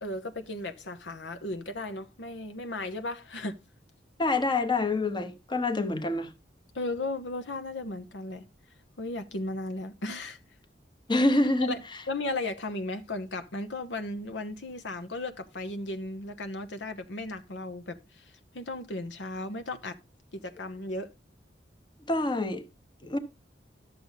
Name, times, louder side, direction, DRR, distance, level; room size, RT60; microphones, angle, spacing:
voice 1, 0.0-3.6 6.7-8.4 9.0-10.4 11.7-20.0 20.3-21.1, left 2 dB, 80° left, 1.0 m, -35 dB
voice 2, 4.2-6.3 11.1-11.7 22.1-22.7 23.0-23.2, left 2 dB, 25° left, 1.0 m, -26 dB
12.0 x 6.8 x 4.0 m
head